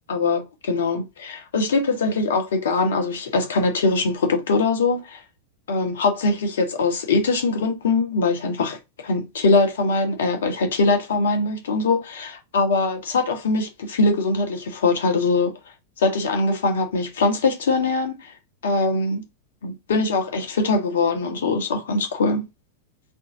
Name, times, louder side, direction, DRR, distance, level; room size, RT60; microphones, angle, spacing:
voice 1, 0.1-5.2 5.7-15.6 16.0-18.3 18.6-19.2 19.6-22.4, left 3 dB, 60° left, 1.2 m, -22 dB
3.6 x 2.8 x 3.7 m
figure-of-eight pair, 90°, 0 cm